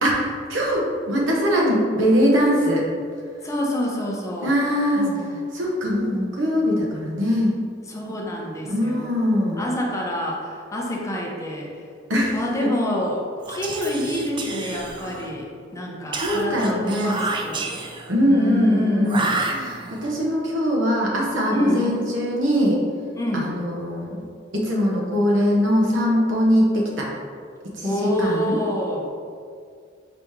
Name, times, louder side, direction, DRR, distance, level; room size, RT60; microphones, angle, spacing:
voice 1, 0.0-2.9 4.4-5.1 5.5-7.6 8.7-9.6 12.1-12.7 16.2-17.2 18.1-19.3 19.5-22.8 23.3-24.2 24.5-27.1 27.7-28.6, equal, 85° right, -3 dB, 1.0 m, -21 dB
voice 2, 3.4-4.5 5.0-5.3 7.9-9.1 9.6-11.8 12.3-13.2 13.5-17.7 18.2-19.1 21.5-22.0 23.2-23.5 27.8-29.1, equal, 15° left, -2 dB, 0.6 m, -27 dB
Whispering, 13.4-15.4 16.1-18.2 19.0-20.1, right 3 dB, 25° right, 0.3 m, -30 dB
5.0 x 3.0 x 3.5 m, 2.2 s
head